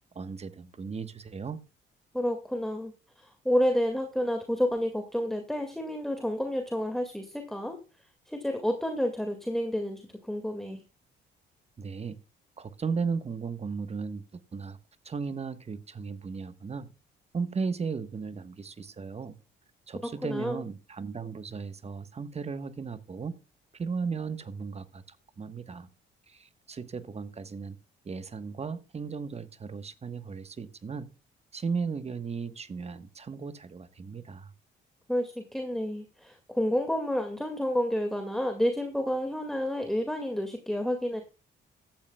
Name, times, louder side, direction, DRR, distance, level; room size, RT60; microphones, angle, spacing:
voice 1, 0.1-1.6 11.8-12.2 12.6-14.8 15.0-16.9 17.3-19.4 19.9-23.3 23.7-25.9 26.3-27.8 28.0-31.1 31.5-34.5, right 5 dB, 30° right, 1.2 m, -36 dB
voice 2, 2.1-7.8 8.3-10.8 20.2-20.6 35.1-41.2, equal, ahead, 1.9 m, -30 dB
15.0 x 12.0 x 2.2 m
cardioid pair, 90°, 20 cm